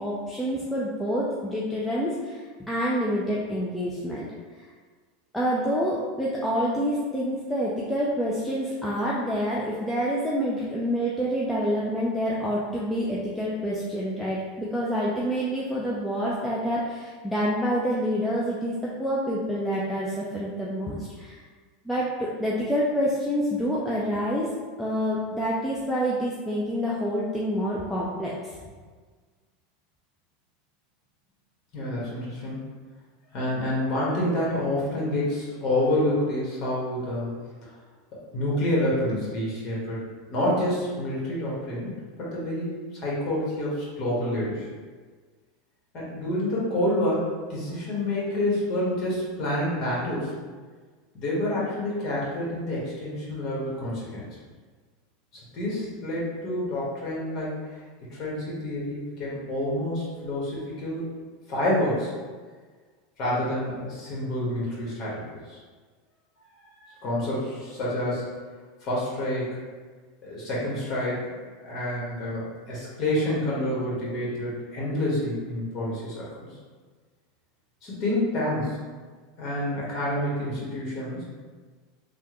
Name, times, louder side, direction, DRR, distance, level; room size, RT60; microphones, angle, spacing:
voice 1, 0.0-4.3 5.3-21.4 21.9-24.5 24.8-28.3, equal, 5° left, -7 dB, 0.5 m, -27 dB
voice 2, 31.7-32.6 33.3-37.3 38.3-40.0 40.3-44.6 45.9-50.3 51.1-54.2 55.5-57.5 58.1-61.1 61.5-62.1 63.2-65.6 66.6-68.3 68.8-69.6 70.2-76.5 77.8-78.8 79.4-81.2, left 1 dB, 45° left, -6 dB, 1.4 m, -28 dB
3.3 x 2.3 x 3.0 m, 1.5 s
hypercardioid pair, 90°, 0 cm